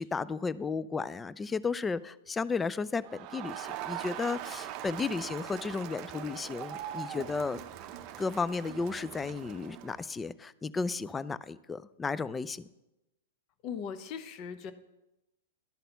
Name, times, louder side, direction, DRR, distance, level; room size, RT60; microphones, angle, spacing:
voice 1, 0.0-7.6 8.2-12.7, left 4 dB, 15° left, 18 dB, 0.3 m, -34 dB
Crowd, 3.0-10.1, right 11 dB, 45° right, 0.6 m, -41 dB
voice 2, 13.6-14.7, left 7 dB, 40° left, 11 dB, 0.8 m, -39 dB
11.5 x 4.1 x 6.7 m, 0.95 s
hypercardioid pair, 125°, 0 cm